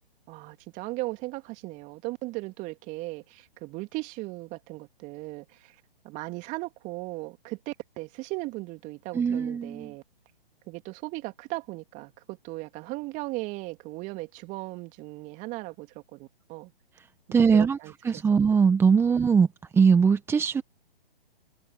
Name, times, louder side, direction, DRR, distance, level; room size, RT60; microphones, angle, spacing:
voice 1, 0.3-5.8 6.0-10.0 10.7-16.7 17.3-18.4 19.1-19.2, right 22 dB, 25° right, 2.9 m, -37 dB
voice 2, 9.1-9.9 17.3-17.8 18.0-19.5 19.7-20.6, right 6 dB, 10° right, 1.4 m, -21 dB
figure-of-eight pair, 130°, 30 cm